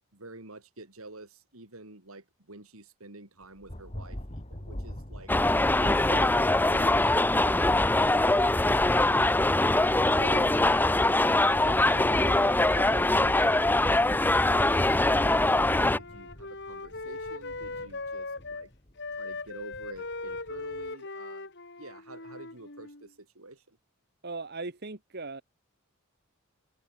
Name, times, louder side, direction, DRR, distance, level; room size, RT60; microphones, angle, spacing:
voice 1, 0.1-5.3 5.7-8.3 9.9-10.6 11.5-18.7 19.2-21.5 21.8-23.8, right 2 dB, 75° right, 4.6 m, -47 dB
Thunder, 3.4-20.9, left 1 dB, 30° left, 2.5 m, -47 dB
sound 1, 5.3-16.0, left 2 dB, 10° left, 0.6 m, -23 dB
Wind instrument woodwind instrument, 15.4-18.7 19.0-23.1, left 3 dB, 55° left, 3.9 m, -39 dB
voice 2, 24.2-25.4, right 3 dB, 50° right, 1.7 m, -38 dB
head